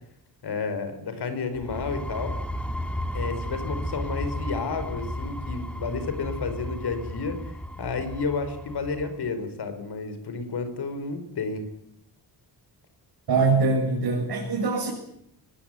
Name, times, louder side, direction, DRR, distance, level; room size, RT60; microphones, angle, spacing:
voice 1, 0.4-2.3 3.1-11.7, left 4 dB, 75° left, 10 dB, 5.5 m, -31 dB
sound 1, 1.5-9.2, equal, 5° left, 2.8 m, -34 dB
voice 2, 13.3-14.9, right 3 dB, 70° right, -1 dB, 7.4 m, -23 dB
24.0 x 21.5 x 9.7 m, 0.75 s
wide cardioid pair, 155°, 40 cm